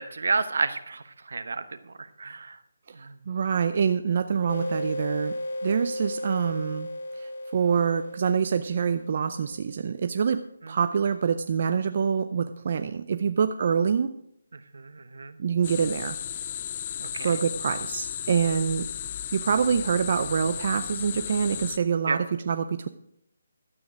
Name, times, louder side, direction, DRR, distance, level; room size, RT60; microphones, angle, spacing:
voice 1, 0.0-2.6 2.9-3.1 14.7-15.3 17.0-17.3 22.1-22.2, right 4 dB, 70° right, 11 dB, 1.0 m, -31 dB
voice 2, 3.3-6.9 7.2-10.4 10.7-14.1 15.4-16.2 17.2-18.9 19.3-22.9, right 6 dB, 45° right, 9 dB, 0.5 m, -26 dB
sound 1, 4.5-9.8, left 1 dB, 65° left, 1.8 m, -35 dB
sound 2, 15.6-21.8, left 10 dB, 30° left, 0.4 m, -35 dB
12.5 x 8.7 x 4.9 m, 0.75 s
hypercardioid pair, 165°, 0 cm